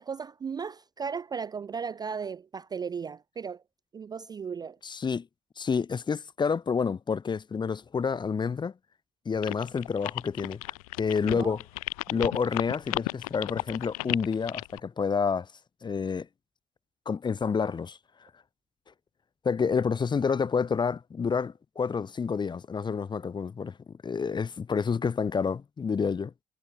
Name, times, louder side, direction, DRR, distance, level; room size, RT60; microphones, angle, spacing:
voice 1, 0.0-3.6 3.9-4.8 11.3-11.6 12.1-12.2, right 6 dB, 20° right, 0.3 m, -36 dB
voice 2, 4.8-5.3 5.6-8.7 9.2-10.6 11.0-11.6 12.1-15.5 15.8-16.3 17.1-18.0 19.4-26.3, left 5 dB, 25° left, 0.6 m, -29 dB
sound 1, 9.4-14.8, left 24 dB, 75° left, 1.5 m, -34 dB
figure-of-eight pair, 55°, 19 cm